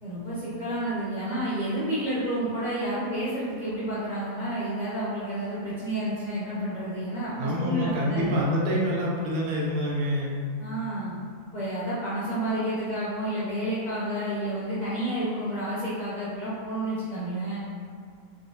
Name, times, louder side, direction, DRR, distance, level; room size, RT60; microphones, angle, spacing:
voice 1, 0.0-8.4 10.6-11.2 11.5-17.6, right 1 dB, 55° left, -10 dB, 0.5 m, -30 dB
voice 2, 7.4-10.4, equal, 80° right, -5 dB, 1.1 m, -26 dB
3.6 x 2.0 x 2.6 m, 2.1 s
omnidirectional pair, 1.6 m